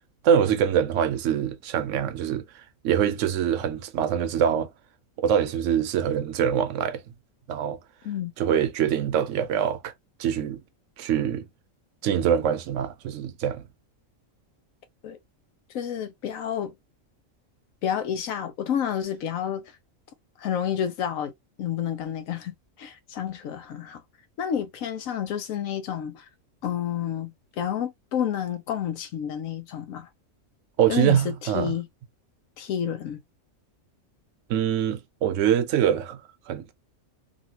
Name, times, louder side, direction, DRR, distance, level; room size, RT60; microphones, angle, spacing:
voice 1, 0.2-2.4 2.8-4.7 5.2-7.0 7.5-7.8 8.4-9.9 10.2-10.6 11.0-11.4 12.0-13.6 30.8-31.7 34.5-36.2 36.5-36.7, right 9 dB, 70° right, 0.9 m, -24 dB
voice 2, 15.7-16.7 17.8-19.7 20.4-21.3 21.6-24.0 24.4-26.3 26.6-30.1 30.9-31.9 32.6-33.2, left 9 dB, 85° left, 1.1 m, -30 dB
2.9 x 2.6 x 2.7 m
omnidirectional pair, 1.4 m